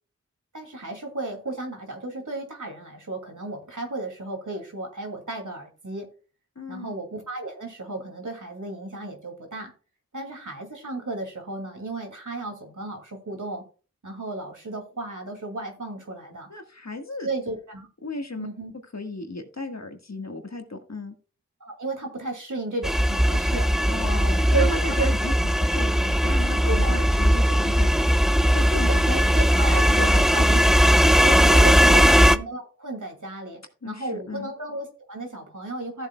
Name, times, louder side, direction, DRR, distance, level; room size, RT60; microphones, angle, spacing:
voice 1, 0.5-6.1 6.7-9.7 10.1-13.6 14.0-16.5 17.2-17.9 18.4-18.7 21.6-23.7 24.5-25.1 26.7-27.1 28.7-36.1, right 2 dB, 70° right, 3 dB, 2.5 m, -33 dB
voice 2, 6.5-6.9 16.5-17.3 18.0-18.5 18.9-21.1 23.9-27.9 28.5-29.4 29.9-30.3 31.8-32.1 33.8-34.5, left 2 dB, 55° left, 5 dB, 1.6 m, -35 dB
sound 1, 22.8-32.4, equal, ahead, 0.4 m, -19 dB
14.5 x 7.4 x 2.3 m, 0.36 s
wide cardioid pair, 40°, 31 cm